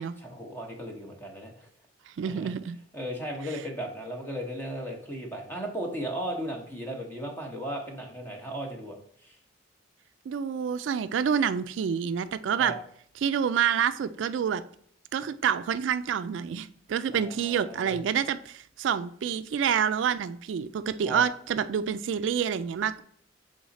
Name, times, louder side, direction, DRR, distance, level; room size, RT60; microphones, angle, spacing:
voice 1, 0.2-1.7 2.2-2.5 2.9-9.0 9.2-9.4 12.6-12.7 17.1-18.0 21.0-21.2, equal, 10° left, 1 dB, 1.1 m, -36 dB
voice 2, 2.2-2.8 10.3-12.7 13.2-14.6 15.1-23.0, right 7 dB, 75° right, 12 dB, 0.3 m, -28 dB
6.4 x 3.8 x 4.0 m, 0.63 s
head